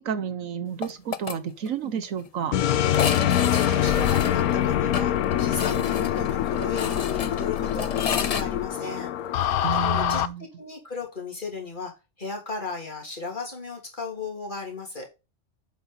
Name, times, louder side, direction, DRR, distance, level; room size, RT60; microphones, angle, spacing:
voice 1, 0.0-2.5 9.6-10.4, right 7 dB, 70° right, 1.2 m, -31 dB
sound 1, 0.8-1.4 1.7-1.8 2.0-2.1 2.9-8.4, left 6 dB, 55° left, 0.4 m, -32 dB
sound 2, 2.5-10.3, left 11 dB, 85° left, 1.2 m, -24 dB
voice 2, 3.4-9.1 9.7-11.9 12.2-15.1, left 4 dB, 35° left, 3.2 m, -35 dB
8.1 x 6.0 x 4.1 m
omnidirectional pair, 1.5 m